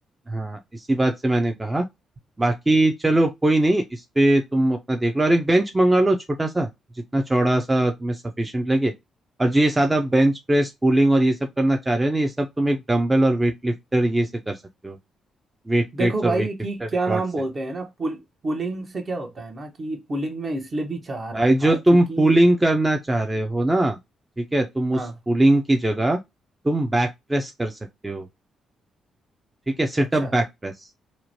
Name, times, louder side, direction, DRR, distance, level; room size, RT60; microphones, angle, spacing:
voice 1, 0.3-1.8 2.4-6.7 7.1-8.9 9.4-14.6 14.8-15.0 15.7-16.5 17.1-17.2 21.3-24.0 24.4-26.2 26.6-27.8 28.0-28.3 29.7-30.9, right 1 dB, 20° right, 0.5 m, -21 dB
voice 2, 15.9-22.4 24.9-25.2 30.2-30.3, right 2 dB, 45° right, 0.9 m, -29 dB
2.9 x 2.1 x 2.7 m
hypercardioid pair, 45°, 0 cm